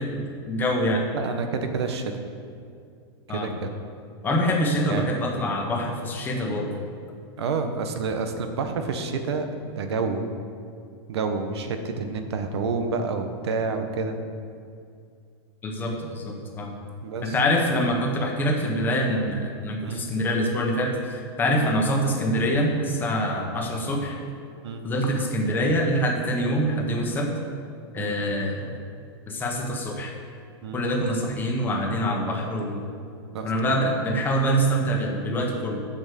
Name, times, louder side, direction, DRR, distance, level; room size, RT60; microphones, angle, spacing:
voice 1, 0.0-1.0 3.3-3.5 4.2-6.7 15.6-16.7 17.2-24.2 24.8-27.3 27.9-28.8 29.3-30.1 30.7-32.8 33.4-35.8, equal, 15° left, 1 dB, 1.1 m, -25 dB
voice 2, 1.1-2.2 3.3-3.8 4.9-5.4 6.6-6.8 7.4-10.2 11.1-14.2 17.0-17.3 19.8-20.1 21.5-21.6 24.6-24.8 28.0-28.2 30.6-30.8 33.3-33.5, right 4 dB, 85° right, 7 dB, 1.1 m, -29 dB
7.9 x 6.2 x 6.9 m, 2.3 s
supercardioid pair, 160°, 14 cm